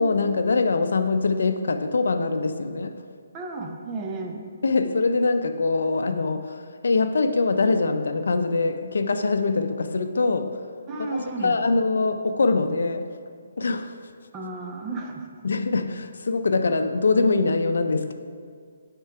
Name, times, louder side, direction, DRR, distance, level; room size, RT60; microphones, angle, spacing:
voice 1, 0.0-3.0 4.6-10.6 11.0-13.0 13.6-13.9 15.4-18.1, left 3 dB, 70° left, 8 dB, 0.5 m, -23 dB
voice 2, 3.3-4.4 10.9-11.6 14.3-15.3, right 3 dB, 15° right, 2 dB, 0.5 m, -33 dB
9.0 x 3.8 x 4.6 m, 2.1 s
hypercardioid pair, 170°, 0 cm